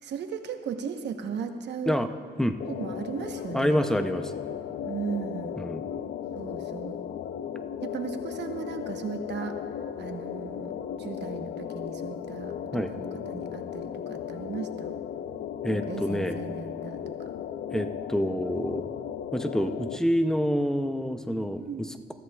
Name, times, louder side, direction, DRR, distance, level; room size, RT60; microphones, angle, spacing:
voice 1, 0.0-1.9 2.7-3.8 4.8-5.5 6.3-7.0 7.8-9.5 10.0-10.7 11.0-14.9 15.7-17.0 21.6-21.9, right 6 dB, 80° right, 6 dB, 1.0 m, -36 dB
sound 1, 2.6-20.0, left 9 dB, 80° left, 0.5 m, -36 dB
voice 2, 3.5-4.4 5.6-5.9 12.7-12.9 15.6-16.4 17.7-18.9 19.3-22.1, equal, 5° left, 8 dB, 0.5 m, -27 dB
21.0 x 14.0 x 2.3 m, 2.1 s
wide cardioid pair, 160°, 18 cm